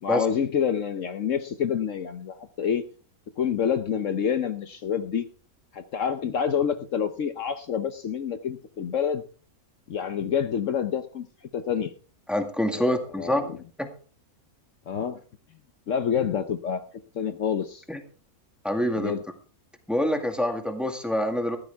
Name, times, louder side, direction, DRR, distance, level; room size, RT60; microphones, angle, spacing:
voice 1, 0.0-2.8 3.4-5.3 5.7-9.2 9.9-11.9 12.7-13.6 14.9-15.2 15.9-16.8 17.1-17.8 18.9-19.2, left 7 dB, 60° left, 9 dB, 1.1 m, -27 dB
voice 2, 12.3-13.4 13.8-13.9 17.9-18.0 18.6-19.1 19.9-21.6, left 1 dB, ahead, 5 dB, 1.8 m, -26 dB
15.0 x 13.0 x 3.5 m, 0.40 s
omnidirectional pair, 1.6 m